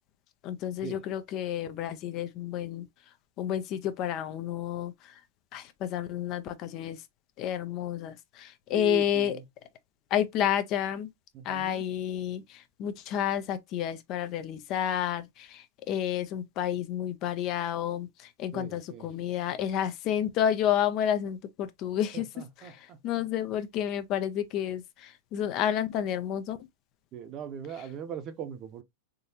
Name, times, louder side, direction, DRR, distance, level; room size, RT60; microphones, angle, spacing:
voice 1, 0.4-2.9 3.4-5.1 5.5-7.0 7.4-9.4 10.1-11.1 11.4-22.3 22.6-26.6, left 10 dB, 40° left, 0.5 m, -30 dB
voice 2, 8.7-9.4 11.3-11.8 18.5-19.1 22.1-23.0 27.1-28.8, right 8 dB, 35° right, 0.8 m, -40 dB
3.7 x 2.6 x 2.7 m
hypercardioid pair, 125°, 0 cm